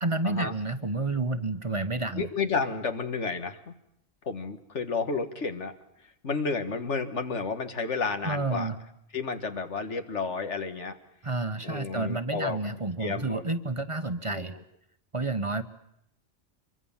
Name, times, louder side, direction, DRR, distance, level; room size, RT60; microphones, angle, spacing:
voice 1, 0.0-2.3 8.2-8.8 11.2-14.6 15.1-15.6, right 2 dB, 30° right, 10 dB, 1.0 m, -30 dB
voice 2, 2.2-3.7 4.3-5.7 6.2-8.7 9.1-11.0 11.6-12.6 13.0-13.4 14.3-14.4, left 4 dB, 80° left, 8 dB, 2.0 m, -31 dB
25.5 x 23.5 x 7.3 m, 0.77 s
omnidirectional pair, 1.2 m